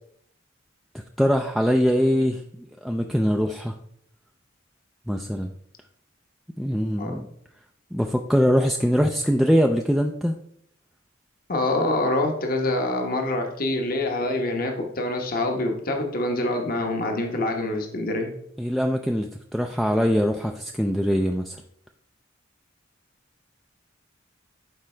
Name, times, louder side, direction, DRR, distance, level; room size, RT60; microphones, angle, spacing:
voice 1, 1.2-2.4 2.8-3.8 5.1-5.5 6.6-7.3 7.9-10.4 18.6-21.6, equal, ahead, 2 dB, 0.3 m, -22 dB
voice 2, 11.5-18.3, left 2 dB, 45° left, 3 dB, 1.1 m, -25 dB
11.5 x 4.6 x 3.3 m, 0.70 s
head